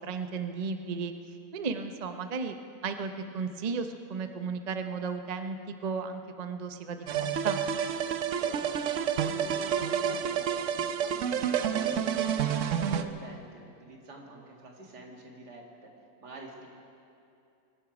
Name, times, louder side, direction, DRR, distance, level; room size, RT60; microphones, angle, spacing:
voice 1, 0.0-2.6 2.8-5.6 5.8-7.6, right 5 dB, 45° right, 7 dB, 0.5 m, -34 dB
sound 1, 7.1-13.0, right 8 dB, 60° right, 0.9 m, -29 dB
voice 2, 8.3-15.9 16.2-16.7, right 2 dB, 80° right, 0 dB, 2.5 m, -46 dB
24.5 x 10.5 x 5.2 m, 2.6 s
omnidirectional pair, 1.7 m